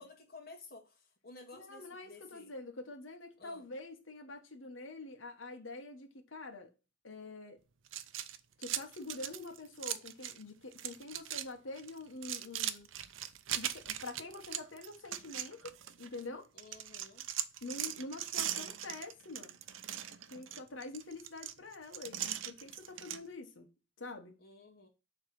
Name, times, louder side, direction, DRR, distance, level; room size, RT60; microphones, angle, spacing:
voice 1, 0.0-2.5 3.4-3.7 16.5-17.3 24.4-24.9, left 3 dB, 50° left, 2.1 m, -54 dB
voice 2, 1.5-6.7 7.0-7.6 8.6-12.9 13.5-16.5 17.6-19.6 20.3-23.7 24.0-24.4, left 2 dB, 85° left, 1.4 m, -46 dB
sound 1, 7.9-10.4 10.7-11.5 11.8-16.2 16.6-23.2, right 11 dB, 85° right, 0.6 m, -40 dB
7.6 x 3.4 x 6.0 m
head